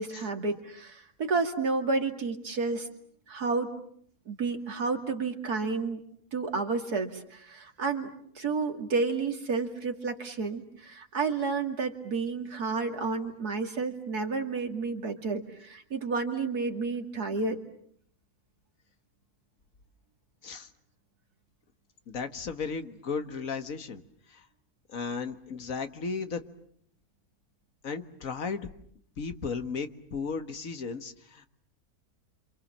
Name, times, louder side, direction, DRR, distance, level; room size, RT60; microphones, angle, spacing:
voice 1, 0.0-2.9 3.3-3.7 4.3-6.0 6.3-17.6, right 4 dB, 80° right, 5 dB, 3.0 m, -31 dB
voice 2, 22.1-24.0 24.3-24.5 24.9-26.4 27.8-28.7 29.2-31.5, left 5 dB, 60° left, 9 dB, 1.8 m, -35 dB
28.5 x 27.0 x 7.4 m, 0.65 s
omnidirectional pair, 1.6 m